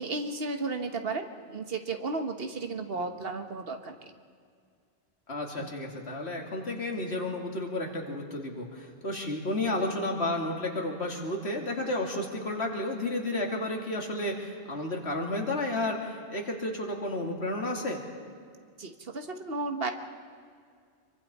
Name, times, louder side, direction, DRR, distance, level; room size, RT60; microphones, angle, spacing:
voice 1, 0.0-4.1 5.6-5.7 18.8-19.9, right 3 dB, 65° right, 6 dB, 1.5 m, -34 dB
voice 2, 5.3-18.0, left 1 dB, 80° left, 1 dB, 2.7 m, -32 dB
26.0 x 23.5 x 4.3 m, 2.1 s
omnidirectional pair, 1.1 m